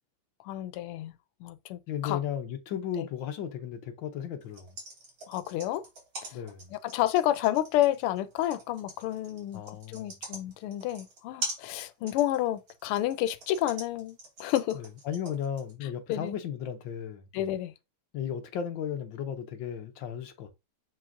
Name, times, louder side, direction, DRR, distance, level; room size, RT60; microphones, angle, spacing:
voice 1, 0.4-2.2 3.0-3.1 5.3-5.8 6.3-6.4 6.7-14.8 15.8-16.3 17.3-17.7, left 13 dB, 85° left, 1.5 m, -30 dB
voice 2, 1.9-4.7 6.3-6.7 9.5-10.2 14.7-17.2 18.1-20.5, left 8 dB, 65° left, 1.4 m, -35 dB
sound 1, 4.4-15.7, right 2 dB, 65° right, 3.8 m, -42 dB
6.7 x 6.1 x 2.6 m
omnidirectional pair, 2.4 m